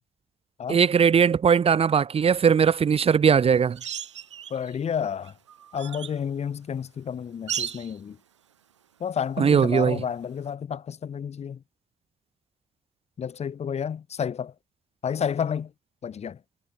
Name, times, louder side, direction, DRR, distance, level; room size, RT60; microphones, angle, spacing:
voice 1, 0.7-3.8 9.4-10.0, right 7 dB, 40° right, 2.1 m, -19 dB
sound 1, 3.8-4.8 5.2-6.2 7.5-8.0 10.2-10.3, right 9 dB, 85° right, 2.4 m, -35 dB
voice 2, 4.5-5.3 5.7-8.2 9.0-11.6 13.2-14.5 15.0-15.7 16.0-16.4, left 7 dB, 45° left, 7.4 m, -30 dB
figure-of-eight pair, 45°, 15 cm